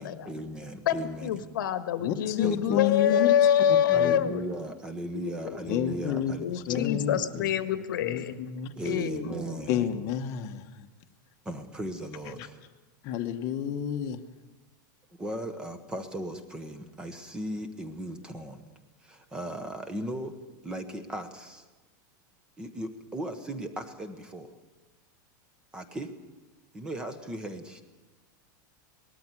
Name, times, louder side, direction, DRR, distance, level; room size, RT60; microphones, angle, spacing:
voice 1, 0.0-1.4 2.4-2.8 3.9-6.9 7.2-7.5 8.8-9.9 11.4-12.6 15.2-18.6 19.0-20.4 20.6-21.7 22.6-24.5 25.7-26.1 26.7-27.8, right 1 dB, 10° right, 9 dB, 1.0 m, -37 dB
voice 2, 1.2-4.5 5.4-5.6 6.4-8.3 8.8-9.3, left 10 dB, 90° left, 10 dB, 1.6 m, -26 dB
voice 3, 2.0-3.3 3.9-4.1 5.6-6.3 6.7-7.2 8.0-8.7 9.7-10.9 13.0-14.2, left 10 dB, 30° left, 6 dB, 1.1 m, -29 dB
20.0 x 13.5 x 9.8 m, 1.2 s
supercardioid pair, 180°, 11 cm